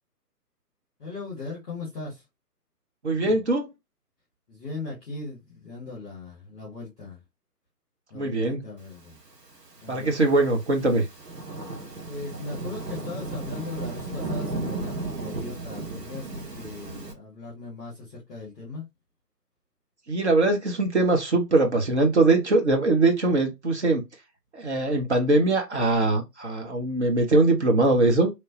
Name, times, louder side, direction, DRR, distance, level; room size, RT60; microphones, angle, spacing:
voice 1, 1.0-2.2 3.2-3.4 4.5-7.2 8.1-9.2 9.8-10.1 12.1-18.9, left 3 dB, 5° right, 0.6 m, -38 dB
voice 2, 3.0-3.7 8.1-8.6 9.9-11.1 20.1-24.0 24.5-28.3, right 2 dB, 45° right, 0.7 m, -22 dB
Thunderstorm / Rain, 9.4-17.1, right 2 dB, 85° right, 1.1 m, -35 dB
2.9 x 2.1 x 2.7 m
figure-of-eight pair, 140°, 48 cm